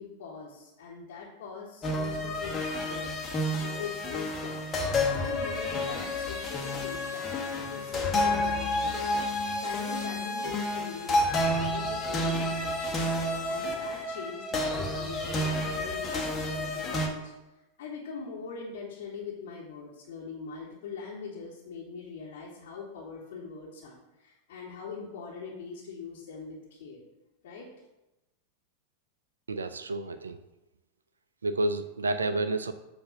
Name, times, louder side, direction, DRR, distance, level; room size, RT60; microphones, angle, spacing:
voice 1, 0.0-3.1 3.6-7.4 7.7-9.1 9.6-13.1 13.5-17.3 17.8-27.0 27.4-27.7, left 5 dB, 55° left, -5 dB, 1.1 m, -42 dB
sound 1, 1.8-17.1, left 1 dB, 20° left, 1.1 m, -30 dB
voice 2, 29.5-30.4 31.4-32.7, right 2 dB, 75° right, 10 dB, 0.4 m, -30 dB
7.7 x 2.6 x 5.5 m, 0.98 s
figure-of-eight pair, 90°, 0 cm